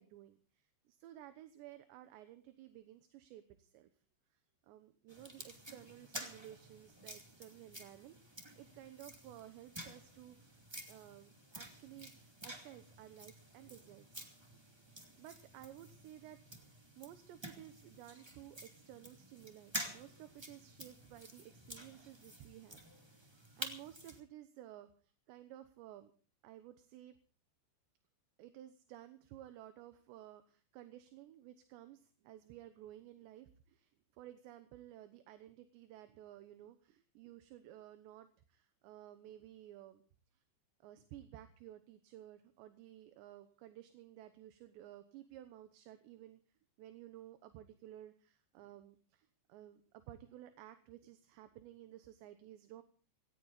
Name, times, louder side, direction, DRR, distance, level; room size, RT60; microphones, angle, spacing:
voice 1, 0.0-3.9 4.6-10.6 10.9-14.2 14.9-16.4 17.0-22.8 23.1-24.9 25.3-26.1 26.4-27.1 28.4-33.9 34.2-40.0 40.8-46.4 46.8-52.8, right 12 dB, 75° right, 10 dB, 3.2 m, -55 dB
sound 1, 5.1-24.2, right 1 dB, 30° right, 0.4 m, -50 dB
18.0 x 17.5 x 4.1 m, 0.37 s
omnidirectional pair, 5.3 m